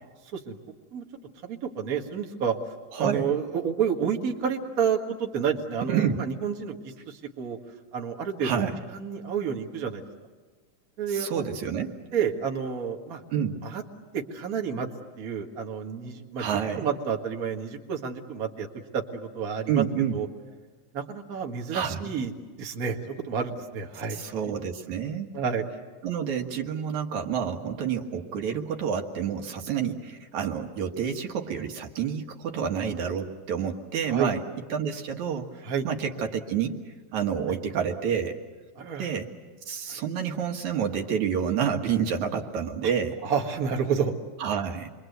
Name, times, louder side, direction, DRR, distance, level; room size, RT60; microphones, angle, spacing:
voice 1, 1.4-2.6 3.0-7.6 7.9-8.6 8.9-10.1 11.0-11.4 12.1-13.2 13.6-13.8 14.1-14.9 15.2-16.5 16.8-18.7 18.9-19.8 20.1-20.3 20.9-22.3 22.6-23.0 23.3-24.2 24.5-24.6 25.3-25.6 34.1-34.3 35.6-35.9 37.5-37.6 38.8-39.1 39.9-40.0 43.2-44.1, right 7 dB, 35° right, 2 dB, 1.8 m, -29 dB
voice 2, 2.9-3.3 5.9-6.2 8.4-8.8 11.1-11.9 13.3-13.6 16.4-16.9 19.7-20.2 21.7-22.1 24.1-25.3 26.0-34.4 34.7-36.8 37.1-38.4 39.0-39.3 39.7-43.2 44.4-44.9, right 7 dB, 70° right, 3 dB, 2.9 m, -29 dB
28.0 x 23.0 x 8.1 m, 1.3 s
omnidirectional pair, 3.6 m